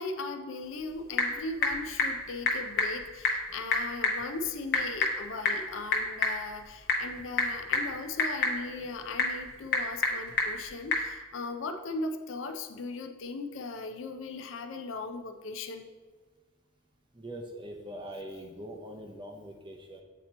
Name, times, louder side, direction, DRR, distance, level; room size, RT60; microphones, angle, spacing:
voice 1, 0.0-15.9, left 3 dB, 70° left, 6 dB, 0.5 m, -38 dB
Typing / Telephone, 0.6-11.1, left 3 dB, 45° left, 0.8 m, -31 dB
voice 2, 17.1-20.0, equal, 25° right, 2 dB, 0.5 m, -42 dB
8.0 x 2.9 x 4.2 m, 1.4 s
head